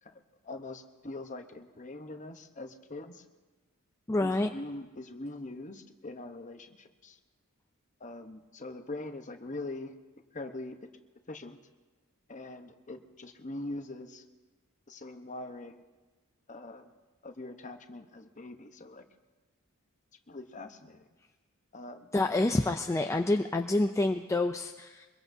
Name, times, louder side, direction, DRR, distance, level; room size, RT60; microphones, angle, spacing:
voice 1, 0.0-3.2 4.2-7.2 8.0-10.8 11.3-11.6 12.3-14.2 14.9-15.8 16.5-16.9 17.2-19.1 20.3-21.1 21.7-22.1, left 2 dB, 35° left, 7 dB, 0.9 m, -43 dB
voice 2, 4.1-4.5 22.1-25.1, left 2 dB, 15° left, 5 dB, 0.4 m, -28 dB
23.5 x 22.0 x 2.7 m, 1.3 s
head